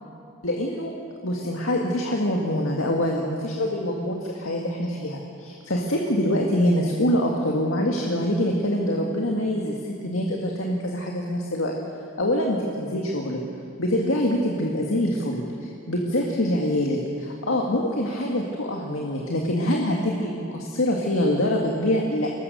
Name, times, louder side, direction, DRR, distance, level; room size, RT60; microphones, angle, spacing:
voice 1, 0.4-0.9 1.2-11.7 12.2-13.4 13.8-22.3, left 1 dB, 75° left, 0 dB, 1.9 m, -25 dB
23.0 x 20.0 x 6.8 m, 2.7 s
head